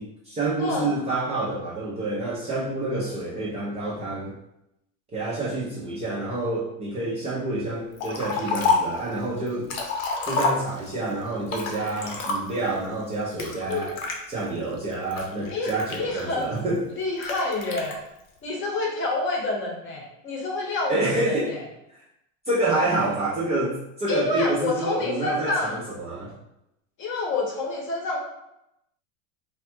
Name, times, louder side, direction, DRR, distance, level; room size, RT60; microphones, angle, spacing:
voice 1, 0.0-4.4 5.1-9.7 10.2-13.9 14.3-16.8 20.9-21.6 21.9-22.0 22.5-26.3, right 2 dB, 15° right, -7 dB, 0.4 m, -28 dB
voice 2, 0.6-0.9 3.1-3.2 5.9-6.0 13.7-13.9 15.5-16.5 17.0-18.0 18.4-21.6 24.1-25.8 27.0-28.2, left 3 dB, 30° left, -1 dB, 0.8 m, -28 dB
Liquid, 8.0-9.0 9.5-11.0 11.5-12.7 13.4-14.2 14.8-16.4 17.2-17.9, left 4 dB, 80° left, 0.8 m, -28 dB
3.4 x 2.2 x 2.6 m, 0.84 s
supercardioid pair, 125°, 40 cm